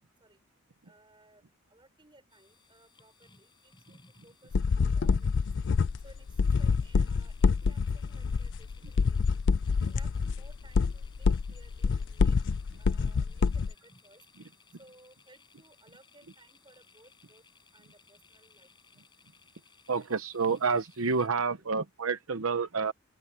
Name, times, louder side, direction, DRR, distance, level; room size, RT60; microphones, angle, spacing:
voice 1, 0.8-1.4 1.7-5.5 6.0-9.4 9.8-14.2 14.8-17.4 17.7-19.0, right 2 dB, 20° right, 6.1 m, -60 dB
sound 1, 2.3-21.3, left 4 dB, 20° left, 5.3 m, -62 dB
sound 2, 4.5-13.7, left 5 dB, 50° left, 0.4 m, -27 dB
voice 2, 19.9-22.9, right 4 dB, 70° right, 0.9 m, -29 dB
open air
head